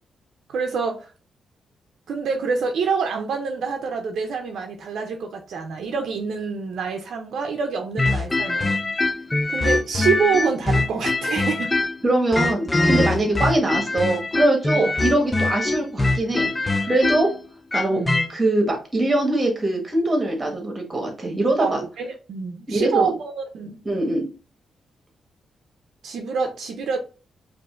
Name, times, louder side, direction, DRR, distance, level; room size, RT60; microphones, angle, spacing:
voice 1, 0.5-1.1 2.1-8.7 9.5-11.7 14.7-14.9 17.9-18.2 21.6-23.8 26.0-27.0, right 5 dB, 70° right, 4 dB, 0.5 m, -26 dB
sound 1, 8.0-12.0 12.3-18.3, left 2 dB, 15° left, 0.4 m, -23 dB
voice 2, 12.0-16.5 16.8-17.3 17.7-18.0 18.3-21.8 22.7-23.1 23.8-24.3, right 1 dB, 20° right, 2 dB, 1.3 m, -22 dB
5.0 x 2.6 x 2.4 m, 0.34 s
cardioid pair, 130°, 0 cm